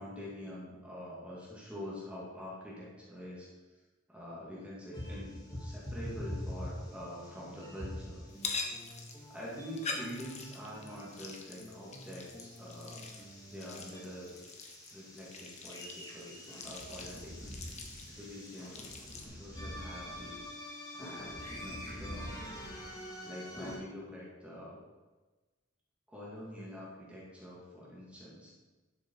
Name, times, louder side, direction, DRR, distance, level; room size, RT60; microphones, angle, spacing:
voice 1, 0.0-3.8 4.1-8.2 9.3-14.4 14.9-18.8 19.2-20.4 20.9-22.6 23.2-24.8 26.1-28.5, equal, 5° right, -7 dB, 2.4 m, -46 dB
sound 1, 4.9-23.8, equal, 20° left, 2.0 m, -45 dB
sound 2, 8.3-19.3, left 4 dB, 35° left, 1.3 m, -45 dB
11.5 x 7.0 x 4.7 m, 1.2 s
head